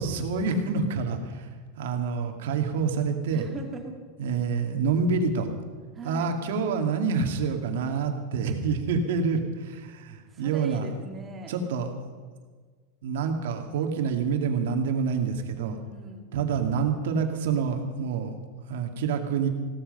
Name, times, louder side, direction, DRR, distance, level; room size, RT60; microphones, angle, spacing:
voice 1, 0.0-1.5 1.8-3.5 4.2-5.5 6.0-10.9 11.5-11.9 13.0-15.8 16.3-18.3 18.7-19.5, right 5 dB, 70° right, 5 dB, 2.2 m, -27 dB
voice 2, 3.3-3.9 5.9-6.3 10.3-11.5 15.5-16.3, right 3 dB, 15° right, 3 dB, 1.8 m, -41 dB
16.5 x 13.0 x 5.5 m, 1.5 s
supercardioid pair, 170°, 0 cm